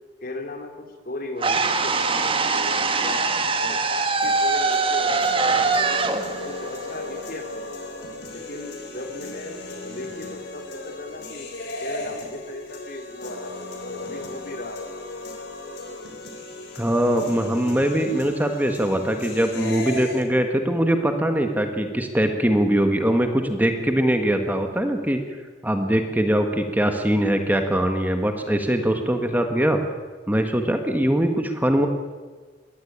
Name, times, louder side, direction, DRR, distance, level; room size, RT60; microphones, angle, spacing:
voice 1, 0.2-3.3 3.6-6.1 6.4-7.8 8.3-11.5 11.8-14.9, left 2 dB, 50° left, 4 dB, 3.2 m, -37 dB
sound 1, 1.4-7.5, right 4 dB, 30° right, 1.5 m, -23 dB
sound 2, 4.2-20.2, left 2 dB, 70° left, 4.1 m, -36 dB
voice 2, 16.8-25.2 25.6-29.8 30.3-31.9, right 1 dB, 10° right, 5 dB, 1.6 m, -22 dB
22.0 x 17.0 x 8.8 m, 1.4 s
head